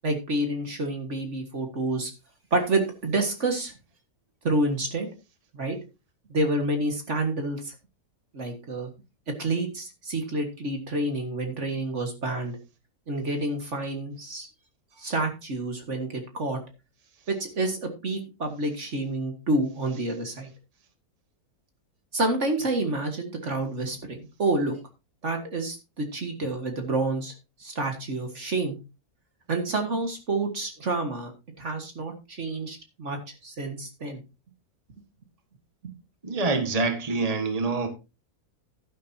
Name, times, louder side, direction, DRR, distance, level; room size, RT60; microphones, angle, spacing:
voice 1, 0.0-2.1 2.5-3.7 4.4-5.1 5.5-5.8 6.3-7.7 8.3-8.9 9.4-12.6 13.1-14.5 15.0-16.6 17.3-20.5 22.1-24.7 25.2-27.3 27.6-28.8 29.5-31.3 31.6-34.2 35.8-35.9, right 2 dB, 50° right, 2.0 m, -28 dB
voice 2, 36.2-37.9, right 3 dB, 25° right, 1.7 m, -26 dB
12.0 x 10.5 x 2.8 m
omnidirectional pair, 1.6 m